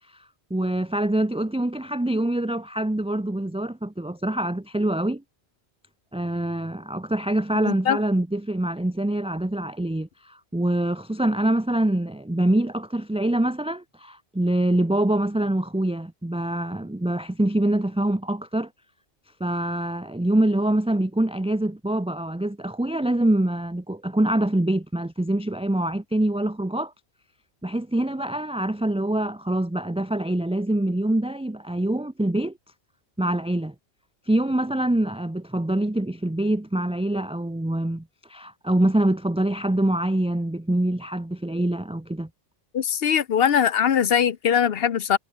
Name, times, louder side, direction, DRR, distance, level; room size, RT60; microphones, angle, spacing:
voice 1, 0.5-5.2 6.1-18.7 19.4-26.9 27.6-32.5 33.2-33.7 34.3-42.3, right 1 dB, 5° right, 0.6 m, -25 dB
voice 2, 7.6-8.0 42.7-45.2, left 8 dB, 65° left, 1.0 m, -21 dB
omnidirectional pair, 1.1 m